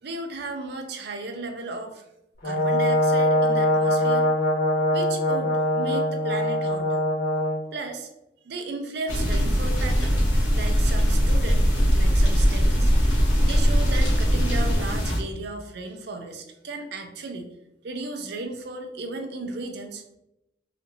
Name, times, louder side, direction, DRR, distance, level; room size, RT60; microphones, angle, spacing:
voice 1, 0.0-2.0 2.4-4.3 4.9-7.0 7.7-8.1 8.4-10.2 10.5-12.9 13.4-17.5 17.8-20.2, right 3 dB, 55° right, 5 dB, 0.5 m, -35 dB
Brass instrument, 2.4-7.6, left 1 dB, 55° left, 1.4 m, -22 dB
sound 1, 9.1-15.2, equal, 85° left, 1.2 m, -20 dB
4.2 x 2.6 x 2.7 m, 0.86 s
head